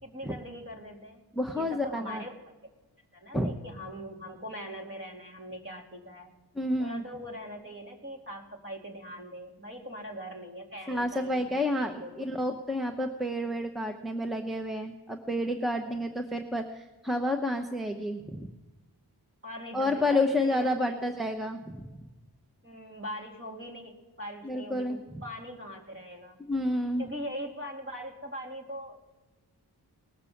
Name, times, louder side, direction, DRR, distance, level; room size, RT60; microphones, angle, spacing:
voice 1, 0.0-1.3 1.5-2.3 3.1-6.3 6.8-12.3 15.9-16.2 19.4-21.2 22.6-26.4 27.0-29.0, equal, 30° right, 0 dB, 2.8 m, -41 dB
voice 2, 1.4-2.2 3.3-3.5 6.5-7.0 10.9-18.5 19.7-22.1 24.4-25.0 26.4-27.1, left 1 dB, ahead, 4 dB, 0.9 m, -30 dB
19.0 x 6.6 x 7.2 m, 1.2 s
wide cardioid pair, 85°, 40 cm